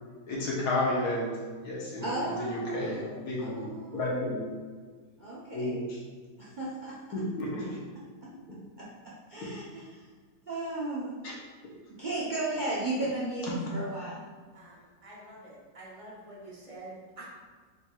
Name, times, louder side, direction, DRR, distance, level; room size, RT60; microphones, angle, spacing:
voice 1, 0.3-4.6 5.5-6.0 7.1-7.8 9.4-9.5, left 1 dB, 65° left, -4 dB, 1.4 m, -32 dB
voice 2, 2.0-3.2 3.5-4.1 5.2-5.7 6.4-7.0 8.2-8.3 9.3-10.0 10.5-11.1 12.0-14.2, right 2 dB, 75° right, -8 dB, 0.4 m, -34 dB
voice 3, 14.5-17.3, right 2 dB, 30° right, -6 dB, 0.6 m, -47 dB
4.4 x 4.3 x 2.3 m, 1.5 s
omnidirectional pair, 2.0 m